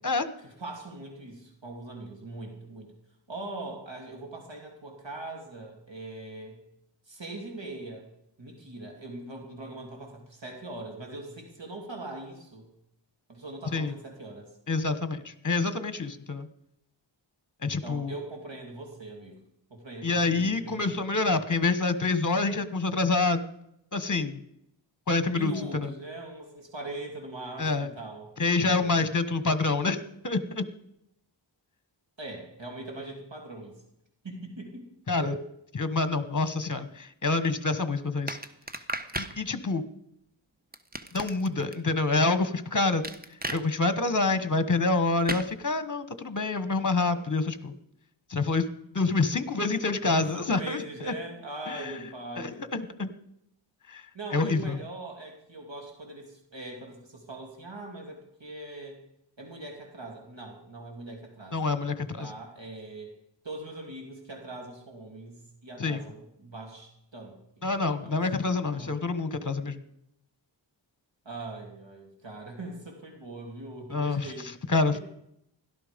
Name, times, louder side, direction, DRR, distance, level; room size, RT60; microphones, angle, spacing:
voice 1, 0.4-2.9 3.3-6.6 7.1-8.0 8.4-12.7 13.3-14.5 17.8-19.4 19.7-20.8 25.3-28.9 32.2-33.8 34.2-34.9 35.2-35.4 50.1-52.6 54.1-59.0 59.4-61.7 62.2-63.1 63.4-67.7 68.0-69.1 71.2-74.5 74.9-75.0, right 2 dB, 70° right, 1 dB, 2.9 m, -41 dB
voice 2, 14.7-16.5 17.6-18.1 20.0-23.4 23.9-24.4 25.1-25.9 27.6-27.9 28.4-30.0 30.2-30.6 35.1-35.3 35.7-38.4 39.2-39.8 41.1-43.0 43.5-47.7 48.3-48.6 48.9-51.1 51.7-51.9 52.4-53.1 53.9-54.0 54.3-54.8 61.5-62.3 65.8-66.0 67.6-69.8 73.9-74.3 74.7-75.0, left 3 dB, 40° left, 12 dB, 1.3 m, -27 dB
sound 1, 38.3-39.4 40.7-41.7 43.0-43.6 45.3-45.5, right 1 dB, 20° right, 1.1 m, -34 dB
17.0 x 12.0 x 5.2 m, 0.79 s
wide cardioid pair, 50°, 46 cm